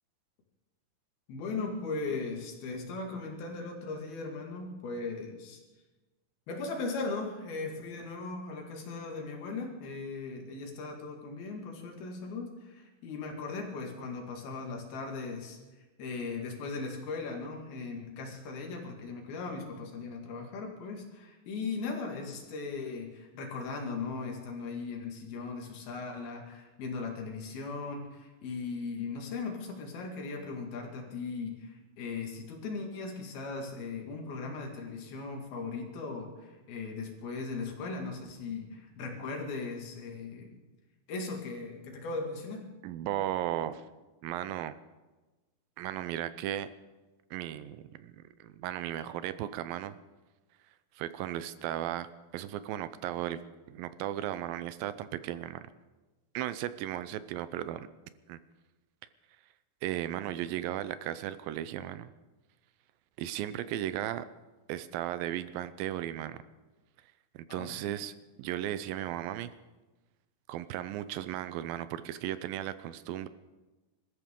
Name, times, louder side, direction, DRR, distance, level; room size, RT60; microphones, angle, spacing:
voice 1, 1.3-5.6 6.5-15.6 16.0-40.5 41.1-42.7 67.5-67.8, left 4 dB, 85° left, 1 dB, 4.0 m, -38 dB
voice 2, 42.8-43.8 44.2-44.8 45.8-46.7 47.3-48.1 48.4-50.0 51.0-52.1 52.3-53.4 53.7-55.6 56.3-57.9 58.3-58.4 59.8-62.1 63.2-64.3 64.7-66.4 67.3-69.5 70.5-73.3, right 12 dB, 80° right, 13 dB, 2.3 m, -35 dB
26.0 x 13.5 x 3.8 m, 1.2 s
omnidirectional pair, 4.2 m